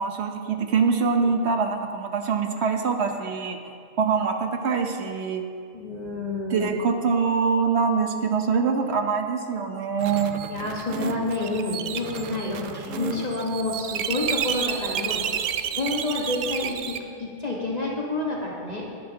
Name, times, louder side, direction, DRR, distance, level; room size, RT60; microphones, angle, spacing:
voice 1, 0.0-3.6 4.0-5.4 6.5-10.4, right 5 dB, 60° right, 5 dB, 1.2 m, -24 dB
voice 2, 5.7-6.7 10.5-15.2 15.7-18.9, left 2 dB, 35° left, -4 dB, 1.5 m, -29 dB
sound 1, 10.0-17.0, right 9 dB, 80° right, 1.0 m, -31 dB
19.0 x 10.0 x 2.9 m, 2.3 s
omnidirectional pair, 1.3 m